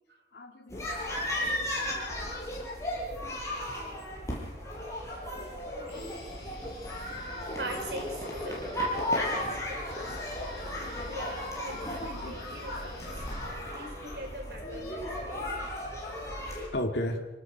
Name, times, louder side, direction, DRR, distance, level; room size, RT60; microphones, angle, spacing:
voice 1, 0.3-0.9 1.2-1.3 5.2-5.7 10.8-11.2 12.0-12.3 16.7-17.3, left 1 dB, 80° left, 2 dB, 2.4 m, -36 dB
sound 1, 0.7-16.7, left 1 dB, 15° left, 6.8 m, -35 dB
voice 2, 1.2-1.9 5.7-6.2 7.6-10.6 11.1-15.5, right 1 dB, 70° right, 3 dB, 5.4 m, -43 dB
Guitar, 5.9-13.9, left 1 dB, 60° left, 6.7 m, -51 dB
27.0 x 18.5 x 6.0 m, 1.1 s
head